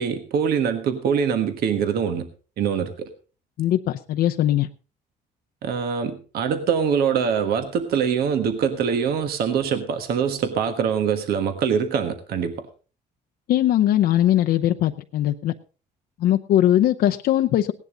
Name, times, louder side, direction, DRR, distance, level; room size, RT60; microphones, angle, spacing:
voice 1, 0.0-2.3 2.6-3.1 5.6-12.7, right 7 dB, 65° right, 8 dB, 1.5 m, -23 dB
voice 2, 3.6-4.7 13.5-15.5 16.2-17.7, left 12 dB, 65° left, 5 dB, 0.7 m, -20 dB
17.0 x 11.0 x 3.9 m, 0.36 s
cardioid pair, 110°, 17 cm